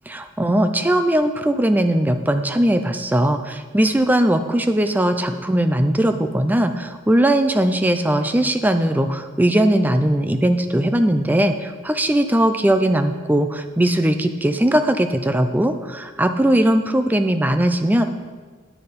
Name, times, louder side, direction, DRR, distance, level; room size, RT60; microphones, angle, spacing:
voice 1, 0.1-18.0, right 1 dB, 10° right, 8 dB, 0.4 m, -19 dB
9.8 x 6.7 x 5.2 m, 1.5 s
head